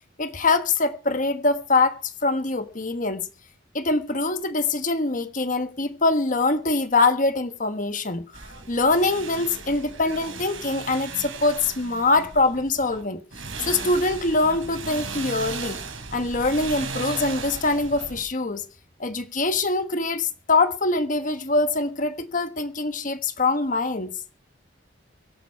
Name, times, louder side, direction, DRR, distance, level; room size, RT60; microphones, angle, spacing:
voice 1, 0.2-3.2 3.7-8.2 8.7-13.2 13.6-15.8 16.1-18.7 19.0-24.2, left 3 dB, 40° left, 1.3 m, -23 dB
sound 1, 8.3-13.0 13.3-18.2, right 4 dB, 85° right, 4.6 m, -36 dB
23.0 x 9.2 x 4.6 m
head